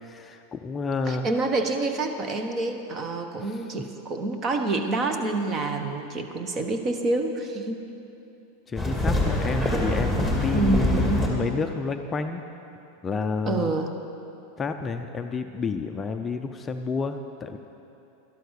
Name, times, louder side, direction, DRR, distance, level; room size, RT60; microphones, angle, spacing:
voice 1, 0.0-1.3 3.4-3.6 8.7-12.4 13.0-13.7 14.6-17.6, left 4 dB, 20° left, 6 dB, 0.5 m, -30 dB
voice 2, 1.1-7.9 10.5-11.3 13.5-13.9, right 2 dB, 30° right, 6 dB, 1.2 m, -27 dB
sound 1, 8.8-11.3, left 1 dB, 10° right, 2.3 m, -24 dB
12.0 x 11.5 x 6.5 m, 2.9 s
supercardioid pair, 135°, 0 cm